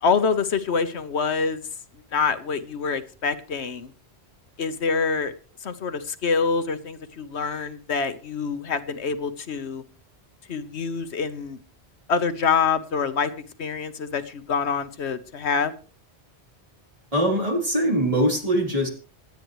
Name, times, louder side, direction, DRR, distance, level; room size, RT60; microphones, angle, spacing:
voice 1, 0.0-1.6 2.1-3.9 4.6-5.3 5.6-9.8 10.5-11.6 12.1-13.3 13.6-15.7, left 5 dB, 85° left, 11 dB, 1.3 m, -26 dB
voice 2, 17.1-18.9, equal, 35° right, 0 dB, 4.1 m, -22 dB
27.0 x 9.3 x 3.1 m, 0.37 s
omnidirectional pair, 1.1 m